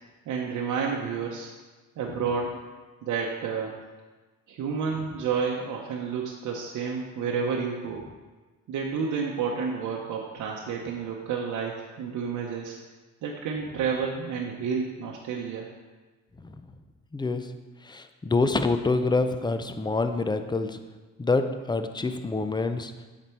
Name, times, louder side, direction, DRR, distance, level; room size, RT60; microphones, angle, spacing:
voice 1, 0.3-1.5 2.0-2.6 3.0-3.8 4.5-8.0 8.7-12.7 13.2-15.7, right 6 dB, 75° right, -1 dB, 0.8 m, -30 dB
voice 2, 17.9-20.8 21.2-22.9, left 3 dB, 15° left, 8 dB, 0.4 m, -26 dB
7.7 x 4.2 x 4.4 m, 1.3 s
cardioid pair, 90°, 30 cm